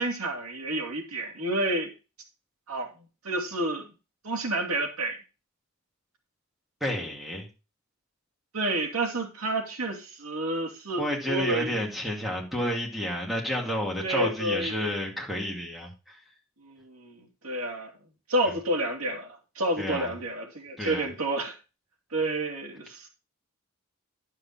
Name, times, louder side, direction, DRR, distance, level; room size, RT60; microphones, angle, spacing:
voice 1, 0.0-1.9 2.7-2.9 3.2-3.9 4.2-5.2 8.5-11.8 14.0-14.9 16.6-17.9 18.3-21.6 22.1-23.1, right 1 dB, 80° right, 2.7 m, -30 dB
voice 2, 6.8-7.5 11.0-16.2 18.4-18.5 19.8-20.1 20.8-21.1, equal, ahead, 2.5 m, -30 dB
11.5 x 5.9 x 4.3 m
head